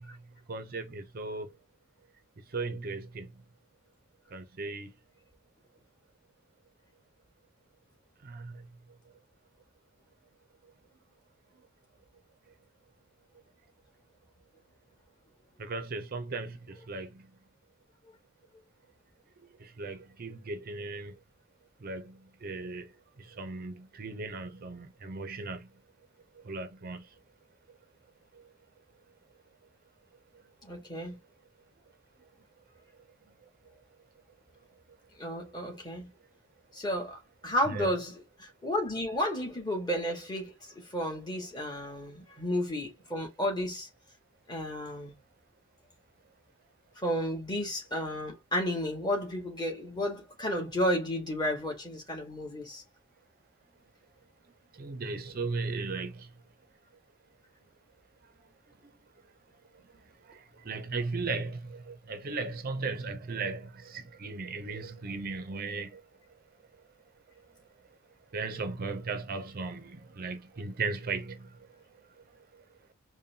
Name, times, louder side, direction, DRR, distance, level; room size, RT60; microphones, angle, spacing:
voice 1, 0.5-1.5 2.5-3.3 4.3-4.9 8.3-8.4 15.6-16.5 16.9-17.1 19.8-21.1 21.8-22.0 22.4-22.9 23.4-25.6 26.5-27.0 37.7-37.9 54.8-56.1 60.7-61.6 62.1-65.9 68.3-69.8 70.2-71.4, right 3 dB, 45° right, 0.5 m, -36 dB
voice 2, 30.6-31.2 35.2-36.1 36.7-43.9 44.5-45.1 47.0-52.8, equal, 20° left, 1.3 m, -32 dB
5.2 x 2.2 x 2.7 m
head